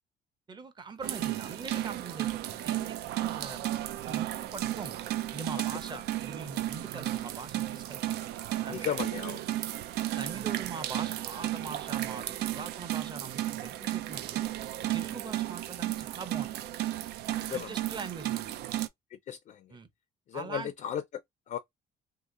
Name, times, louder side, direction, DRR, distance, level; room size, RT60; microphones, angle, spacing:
voice 1, 0.5-3.6 4.0-5.0 5.3-8.2 8.6-8.9 10.2-14.5 14.9-16.5 17.4-18.6 19.7-19.9 20.3-20.7, right 4 dB, 25° right, 0.8 m, -42 dB
sound 1, 1.0-18.9, right 14 dB, 75° right, 0.4 m, -34 dB
voice 2, 8.7-9.4 17.4-17.7 19.3-19.7 20.3-21.0 21.5-21.6, left 9 dB, 50° left, 0.4 m, -35 dB
2.8 x 2.4 x 3.6 m
cardioid pair, 110°, 17 cm